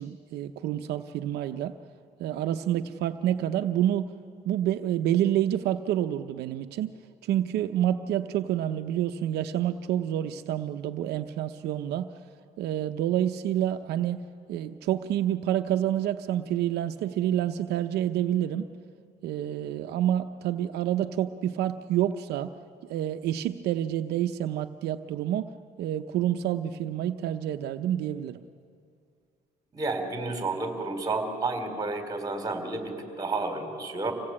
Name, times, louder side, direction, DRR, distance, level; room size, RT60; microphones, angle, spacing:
voice 1, 0.0-1.7 2.2-4.1 4.5-6.9 7.2-12.1 12.6-14.2 14.5-18.7 19.2-22.5 22.9-25.5 25.8-28.4, right 11 dB, 75° right, 7 dB, 0.8 m, -28 dB
voice 2, 29.7-34.1, right 3 dB, 20° right, 5 dB, 3.6 m, -31 dB
26.0 x 17.0 x 8.7 m, 2.4 s
cardioid pair, 110°, 17 cm